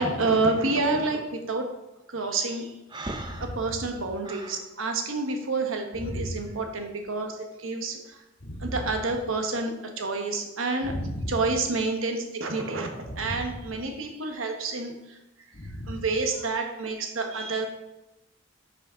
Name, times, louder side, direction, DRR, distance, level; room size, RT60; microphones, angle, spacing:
voice 1, 0.0-1.7 2.1-2.7 3.0-8.0 8.6-9.7 10.0-10.9 11.3-14.9 15.9-17.7, right 3 dB, 85° right, 4 dB, 1.1 m, -28 dB
Breathing, 2.9-4.6, right 2 dB, 20° right, 0.6 m, -38 dB
voice 2, 3.3-3.9 6.0-6.5 8.4-9.0 10.8-11.6 13.0-13.7 15.5-16.0, equal, 45° left, 0 dB, 1.4 m, -35 dB
6.4 x 4.9 x 5.6 m, 0.95 s
head